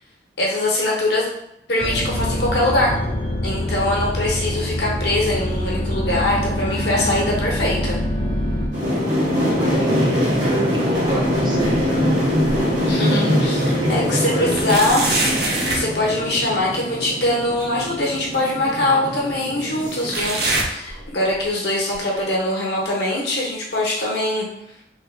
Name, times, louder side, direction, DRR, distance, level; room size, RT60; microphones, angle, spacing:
voice 1, 0.4-1.3 1.7-2.9 3.4-8.0 12.8-24.5, left 1 dB, 65° left, -3 dB, 0.9 m, -22 dB
terror ambience, 1.8-8.7, left 1 dB, 25° left, 0.6 m, -24 dB
sound 1, 8.7-20.5, equal, 80° right, 1.3 m, -22 dB
voice 2, 9.6-11.8 13.7-14.6, equal, 25° right, -2 dB, 0.5 m, -28 dB
sound 2, 10.0-10.7 11.0-12.9 13.4-13.5 14.5-15.9 17.6-17.7 18.6-18.7 20.1-21.5 21.8-22.2 22.8-22.9 23.8-23.9, right 2 dB, 60° right, 0.7 m, -26 dB
3.2 x 2.2 x 3.2 m, 0.82 s
head